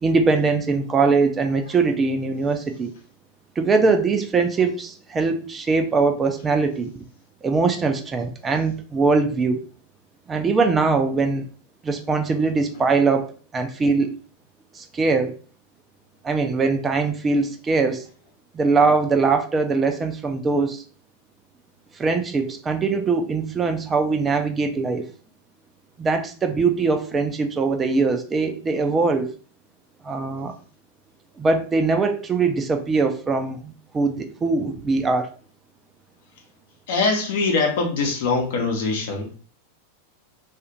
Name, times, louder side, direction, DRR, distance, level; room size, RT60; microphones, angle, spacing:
voice 1, 0.0-2.9 3.6-6.9 7.4-9.6 10.3-11.4 11.8-14.1 14.7-15.4 16.2-18.0 18.5-20.8 21.9-25.0 26.0-29.3 30.0-30.5 31.4-35.3, right 4 dB, 20° right, 6 dB, 0.4 m, -22 dB
voice 2, 36.9-39.3, left 3 dB, 55° left, 2 dB, 0.8 m, -23 dB
2.4 x 2.4 x 2.9 m, 0.39 s
figure-of-eight pair, 90°, 0 cm